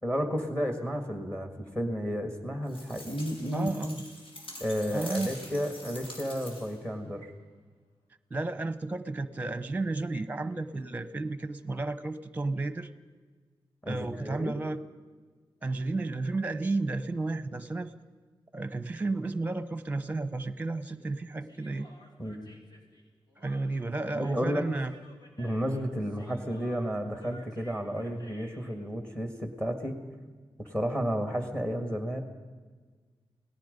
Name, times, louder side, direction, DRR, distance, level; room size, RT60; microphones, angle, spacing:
voice 1, 0.0-3.7 4.6-7.3 13.8-14.5 22.2-22.5 24.1-24.6 25.4-30.0 30.6-32.2, equal, 15° left, 6 dB, 1.9 m, -32 dB
sound 1, 2.7-6.9, left 1 dB, 80° left, 5.7 m, -45 dB
voice 2, 3.5-4.0 4.9-5.3 8.3-12.9 13.9-14.8 15.6-17.9 18.5-21.9 23.4-24.9, right 2 dB, 15° right, 13 dB, 0.9 m, -32 dB
Human voice, 21.4-28.8, equal, 50° left, 3.6 m, -55 dB
29.0 x 18.5 x 5.3 m, 1.4 s
wide cardioid pair, 165°, 9 cm